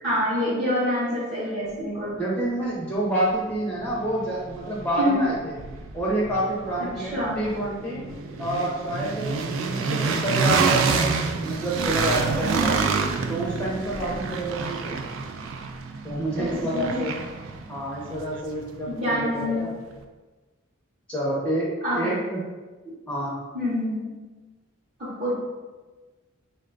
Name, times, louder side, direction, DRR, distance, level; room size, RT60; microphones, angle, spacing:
voice 1, 0.0-2.2 5.0-5.2 6.8-7.4 8.0-8.1 16.4-17.1 18.9-19.7 21.8-22.1 23.5-24.1 25.0-25.3, equal, 40° right, -10 dB, 0.8 m, -26 dB
voice 2, 2.2-5.6 5.9-8.0 8.4-11.1 11.4-12.8 13.3-15.0 16.0-17.1 17.7-19.7 21.1-22.4 23.1-23.4, right 1 dB, 5° left, -6 dB, 0.6 m, -28 dB
sound 1, 2.9-3.0 3.5-19.4, right 4 dB, 75° right, 0.4 m, -28 dB
3.7 x 2.2 x 3.8 m, 1.3 s
head